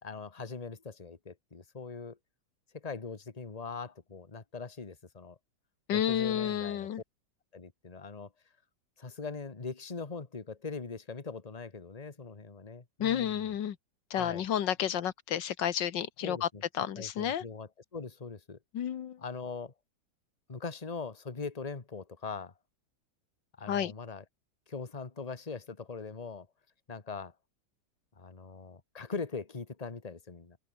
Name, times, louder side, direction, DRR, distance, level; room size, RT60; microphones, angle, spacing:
voice 1, 0.0-2.2 2.7-5.4 5.9-6.9 7.5-8.3 9.0-13.5 14.1-14.4 16.2-16.6 16.9-18.6 19.2-19.7 20.5-22.5 23.6-24.2 24.7-26.5 26.9-27.3 28.2-30.6, left 4 dB, 20° left, 1.7 m, -41 dB
voice 2, 5.9-7.0 13.0-13.8 14.1-16.5 16.8-17.4 18.7-19.2 23.7-23.9, left 10 dB, 90° left, 1.9 m, -31 dB
open air
omnidirectional pair, 1.9 m